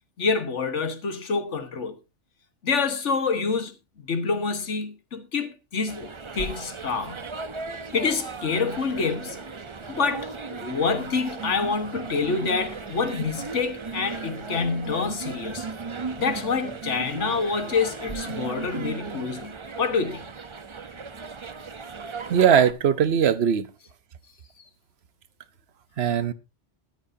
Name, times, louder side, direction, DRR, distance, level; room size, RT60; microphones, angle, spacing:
voice 1, 0.2-1.9 2.6-3.7 4.0-7.2 7.9-9.4 9.9-15.7 16.2-20.3, left 5 dB, 80° left, 1.7 m, -27 dB
sound 1, 5.9-22.7, right 4 dB, 30° right, 0.7 m, -36 dB
Water tap faucet / Sink (filling or washing), 6.4-18.1, equal, 5° right, 4.2 m, -48 dB
voice 2, 22.3-23.7 26.0-26.3, right 8 dB, 65° right, 1.0 m, -20 dB
13.5 x 13.0 x 2.7 m
omnidirectional pair, 1.2 m